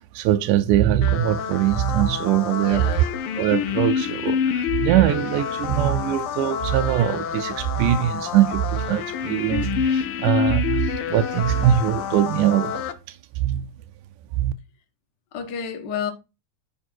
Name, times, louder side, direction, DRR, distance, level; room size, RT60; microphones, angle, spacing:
voice 1, 0.1-3.0 3.4-13.7 14.4-14.5, right 12 dB, 80° right, 2.1 m, -22 dB
sound 1, 1.0-12.9, left 8 dB, 80° left, 1.2 m, -27 dB
voice 2, 2.6-3.1 3.3-3.4 15.3-16.1, left 7 dB, 50° left, 1.4 m, -30 dB
9.8 x 5.2 x 4.5 m
omnidirectional pair, 3.7 m